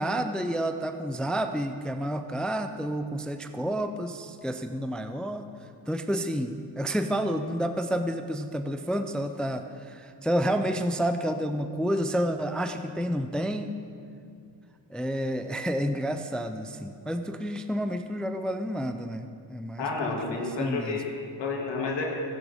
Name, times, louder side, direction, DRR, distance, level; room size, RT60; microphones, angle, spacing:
voice 1, 0.0-13.7 14.9-21.0, equal, ahead, 8 dB, 0.4 m, -30 dB
voice 2, 19.8-22.0, left 4 dB, 75° left, -2 dB, 2.5 m, -31 dB
15.0 x 9.9 x 3.6 m, 2.4 s
cardioid pair, 95°, 44 cm